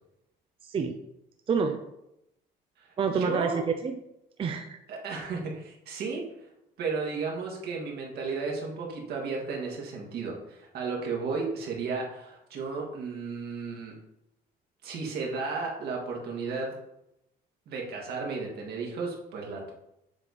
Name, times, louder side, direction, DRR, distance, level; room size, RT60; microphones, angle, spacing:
voice 1, 0.6-1.0 1.5-1.8 3.0-4.0 4.4-4.8, right 5 dB, 30° right, 5 dB, 0.5 m, -28 dB
voice 2, 2.8-3.6 4.9-6.3 6.8-14.0 14.8-16.7 17.7-19.7, right 4 dB, 70° right, -1 dB, 1.7 m, -34 dB
7.2 x 3.4 x 4.1 m, 0.84 s
cardioid pair, 110°, 17 cm